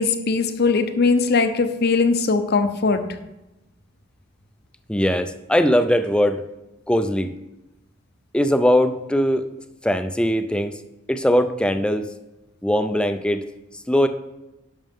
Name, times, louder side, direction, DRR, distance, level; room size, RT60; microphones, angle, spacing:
voice 1, 0.0-3.1, left 4 dB, 55° left, 9 dB, 0.7 m, -20 dB
voice 2, 4.9-6.4 6.9-7.3 8.3-9.5 9.8-10.8 11.1-12.1 12.6-13.5 13.9-14.1, equal, 5° left, 8 dB, 0.4 m, -20 dB
11.0 x 6.5 x 3.6 m, 0.98 s
head